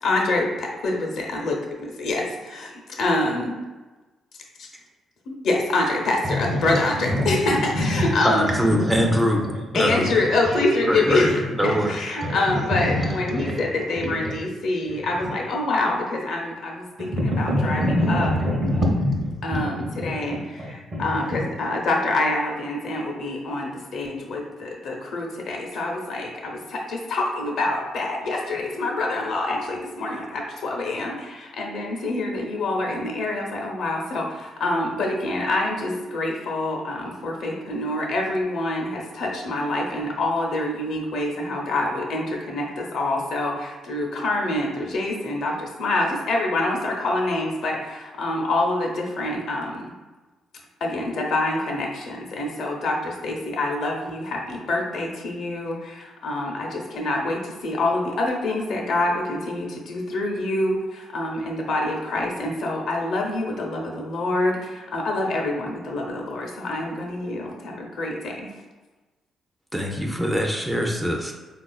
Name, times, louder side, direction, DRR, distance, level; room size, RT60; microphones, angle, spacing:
voice 1, 0.0-3.5 4.6-4.7 5.3-8.5 8.8-8.9 9.7-18.3 19.4-49.8 50.8-68.4, left 2 dB, 70° left, 0 dB, 0.6 m, -26 dB
voice 2, 6.2-8.2 8.7-9.9 10.4-10.6 11.1-11.9 12.2-13.6 14.0-14.5 14.9-15.4 17.0-21.4, left 1 dB, 45° right, 0 dB, 0.7 m, -26 dB
voice 3, 8.2-9.5 9.7-10.1 10.9-12.0 69.7-71.3, equal, 10° right, 1 dB, 0.4 m, -23 dB
3.6 x 2.3 x 2.3 m, 1.2 s
cardioid pair, 90°, 0 cm